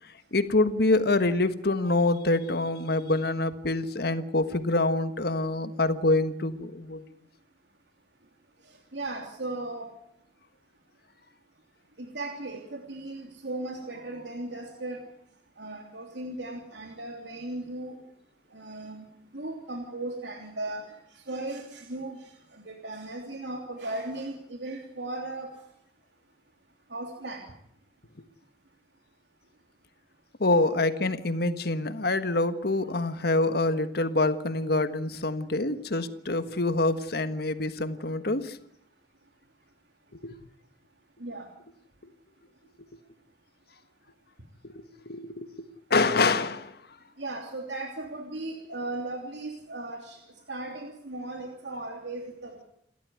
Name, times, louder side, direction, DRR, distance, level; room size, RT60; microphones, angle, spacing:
voice 1, 0.3-7.0 30.4-38.6 40.2-40.4 44.6-46.7, left 2 dB, 60° left, 11 dB, 1.5 m, -26 dB
voice 2, 8.9-9.9 12.0-15.0 15.6-17.9 18.5-19.0 19.3-20.8 21.3-22.2 22.6-25.5 26.9-27.4 41.2-41.5 47.2-50.2 50.5-52.6, right 2 dB, 80° right, 2 dB, 3.1 m, -36 dB
29.0 x 13.5 x 9.6 m, 0.71 s
head